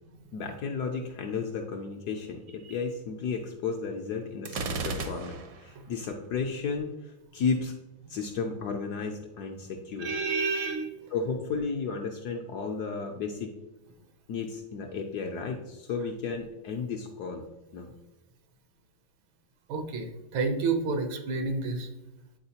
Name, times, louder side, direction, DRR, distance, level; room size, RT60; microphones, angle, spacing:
voice 1, 0.3-7.7 8.1-10.1 11.1-13.6 14.3-17.5 17.7-17.9, left 5 dB, 75° left, 3 dB, 0.9 m, -33 dB
Gunshot gunfire, 4.5-5.7, right 3 dB, 65° right, 0.9 m, -34 dB
voice 2, 10.0-10.9 19.7-21.9, right 4 dB, 80° right, 6 dB, 1.6 m, -29 dB
8.7 x 4.2 x 2.8 m, 0.99 s
omnidirectional pair, 2.2 m